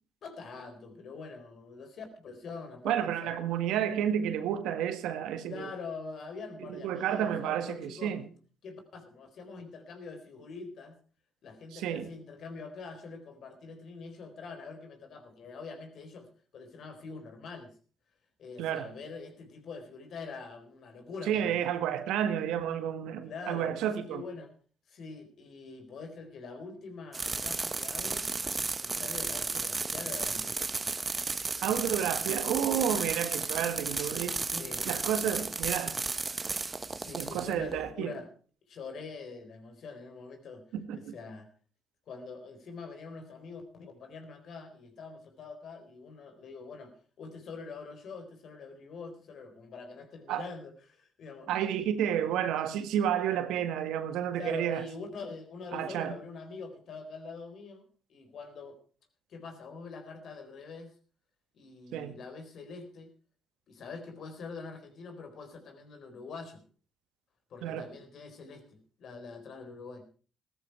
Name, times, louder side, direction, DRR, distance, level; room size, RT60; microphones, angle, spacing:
voice 1, 0.2-3.3 5.5-8.1 8.6-11.0 11.4-16.3 16.5-17.7 18.4-21.6 23.2-24.5 24.9-28.3 28.8-30.7 31.5-31.6 32.9-33.2 34.5-34.9 36.9-38.3 38.7-40.6 41.1-41.5 42.1-51.5 54.4-58.8 59.3-60.9 61.5-63.1 63.7-66.6 67.5-70.1, left 4 dB, 60° left, 4.1 m, -44 dB
voice 2, 2.8-5.7 6.6-8.3 11.7-12.1 18.6-18.9 21.3-24.2 31.6-34.4 34.9-35.9 37.1-38.1 40.7-41.1 50.3-50.4 51.5-54.9 55.7-56.1 61.9-62.2 67.6-67.9, right 9 dB, 80° right, 1.6 m, -31 dB
sound 1, 27.1-37.9, right 4 dB, 30° right, 1.2 m, -34 dB
15.5 x 13.5 x 4.7 m
supercardioid pair, 65°, 0 cm